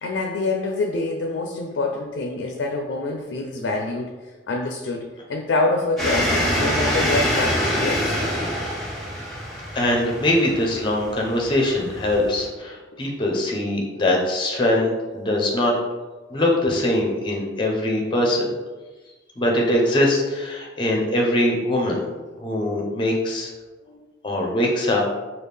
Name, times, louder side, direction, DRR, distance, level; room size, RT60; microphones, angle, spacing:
voice 1, 0.0-4.1 4.5-8.3 23.9-24.0, left 2 dB, 80° left, 2 dB, 0.4 m, -26 dB
sound 1, 6.0-12.4, equal, ahead, 1.2 m, -25 dB
voice 2, 9.7-15.7 16.3-18.5 19.4-22.1 22.4-23.5 24.2-25.0, left 1 dB, 25° left, -1 dB, 0.6 m, -22 dB
3.4 x 2.4 x 3.3 m, 1.2 s
head